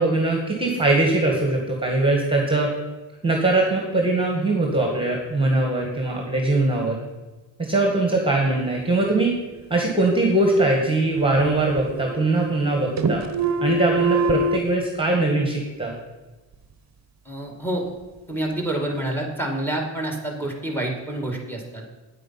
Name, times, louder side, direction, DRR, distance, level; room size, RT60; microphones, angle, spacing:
voice 1, 0.0-2.7 3.2-7.0 7.6-9.3 9.7-13.2 13.6-15.9, right 2 dB, 10° right, 0 dB, 1.9 m, -21 dB
sound 1, 10.5-11.5 11.8-12.7 13.0-14.6, right 2 dB, 35° right, 1.0 m, -25 dB
voice 2, 17.3-17.8 18.3-21.8, right 1 dB, 5° left, 2 dB, 2.2 m, -28 dB
9.2 x 8.6 x 5.8 m, 1.2 s
cardioid pair, 120°, 46 cm